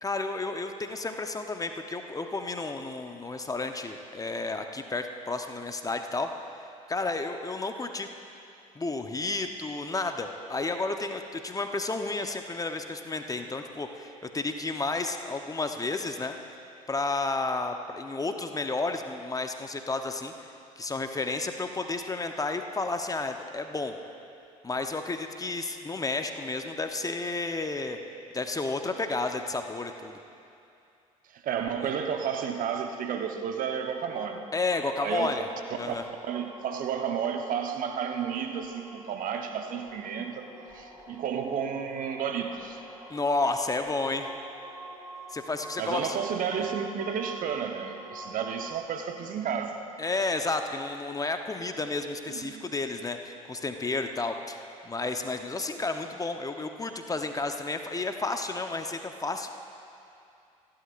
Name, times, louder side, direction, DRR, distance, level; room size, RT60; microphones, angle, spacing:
voice 1, 0.0-6.3 6.9-8.1 8.7-16.3 16.9-20.5 20.8-24.0 24.6-28.0 28.3-30.2 31.8-31.9 34.5-35.5 35.8-36.0 43.1-44.3 45.3-46.2 46.6-46.7 50.0-54.6 54.8-59.5, left 3 dB, 20° left, 6 dB, 1.0 m, -31 dB
voice 2, 31.3-34.4 35.0-35.4 35.9-36.0 36.3-40.5 40.7-42.8 45.8-49.8 52.3-52.6, right 7 dB, 50° right, 5 dB, 1.1 m, -32 dB
sound 1, 34.1-48.8, equal, 15° right, 1.7 m, -47 dB
28.0 x 11.5 x 2.6 m, 2.6 s
figure-of-eight pair, 55°, 18 cm